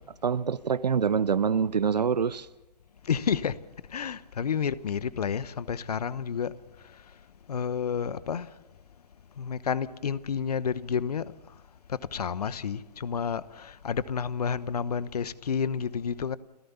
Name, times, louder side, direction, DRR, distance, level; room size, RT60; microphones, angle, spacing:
voice 1, 0.2-2.5, right 6 dB, 80° right, 0.7 m, -25 dB
voice 2, 3.0-3.6 3.9-6.5 6.8-7.0 7.5-8.5 9.4-11.3 11.9-16.4, left 7 dB, 70° left, 1.0 m, -30 dB
29.5 x 14.5 x 7.1 m
figure-of-eight pair, 125°, 21 cm